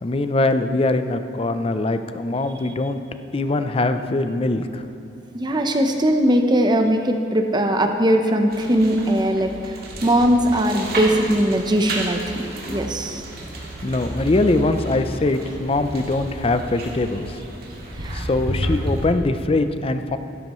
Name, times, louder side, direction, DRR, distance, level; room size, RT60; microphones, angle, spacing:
voice 1, 0.0-3.0 3.3-4.8 13.8-17.4 18.1-20.2, left 2 dB, 35° left, 9 dB, 0.5 m, -22 dB
voice 2, 5.3-9.8 10.0-13.2 18.0-18.3, equal, 25° right, 5 dB, 0.8 m, -20 dB
sound 1, 8.5-19.1, right 1 dB, 60° right, 2.0 m, -31 dB
15.5 x 12.5 x 3.1 m, 2.9 s
head